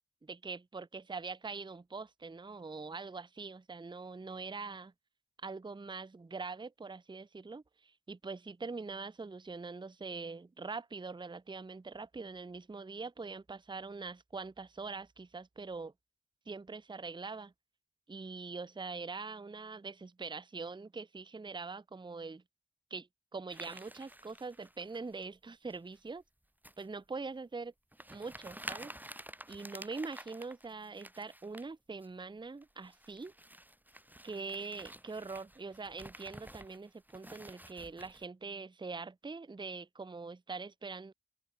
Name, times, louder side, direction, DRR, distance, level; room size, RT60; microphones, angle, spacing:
voice 1, 0.2-4.9 5.4-15.9 16.5-17.5 18.1-22.4 22.9-26.2 26.8-27.7 28.1-28.9 29.5-33.3 34.2-41.1, right 4 dB, 25° right, 0.5 m, -43 dB
sound 1, 23.5-25.2 25.7-26.1 26.6-26.9 27.4-27.5 27.9-31.7 32.0-32.2 32.6-38.3, right 1 dB, 10° right, 1.1 m, -50 dB
open air
wide cardioid pair, 50°, 19 cm